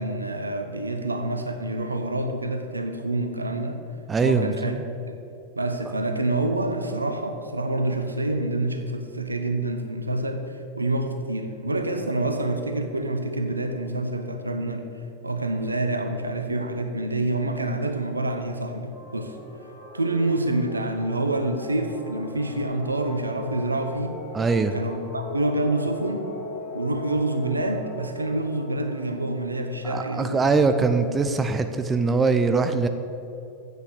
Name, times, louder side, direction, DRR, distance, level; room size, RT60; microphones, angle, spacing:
voice 1, 0.0-3.8 4.2-4.8 5.1-5.2 5.6-14.8 15.2-19.4 19.9-24.1 24.7-26.3 26.7-30.4, right 2 dB, 80° right, 6 dB, 0.8 m, -27 dB
voice 2, 4.1-4.7 17.7-17.8 24.3-24.7 29.8-32.9, right 4 dB, 15° right, 9 dB, 0.5 m, -22 dB
sound 1, 18.9-30.7, left 2 dB, 35° left, 2.5 m, -41 dB
8.2 x 6.7 x 6.6 m, 2.7 s
figure-of-eight pair, 90°, 0 cm